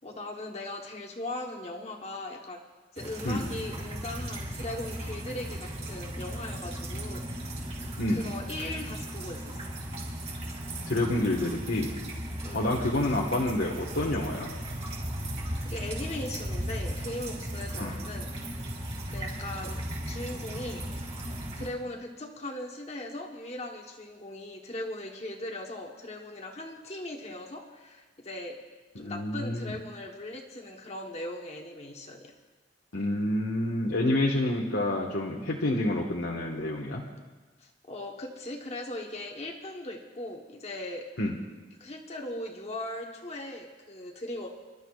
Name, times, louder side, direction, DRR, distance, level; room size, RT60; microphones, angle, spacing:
voice 1, 0.0-2.6 2.9-7.6 8.1-9.6 12.4-12.7 15.2-18.3 18.5-18.7 19.1-20.8 21.6-28.6 29.0-32.3 37.6-41.1 41.8-44.5, left 1 dB, 35° left, 1 dB, 1.1 m, -39 dB
sound 1, 3.0-21.7, right 1 dB, 35° right, 4.4 m, -36 dB
voice 2, 8.0-8.3 10.9-11.9 12.5-14.5 17.8-17.9 28.9-29.7 32.9-37.0 41.2-41.4, left 1 dB, 80° left, -2 dB, 1.5 m, -28 dB
29.0 x 12.5 x 2.4 m, 1.3 s
head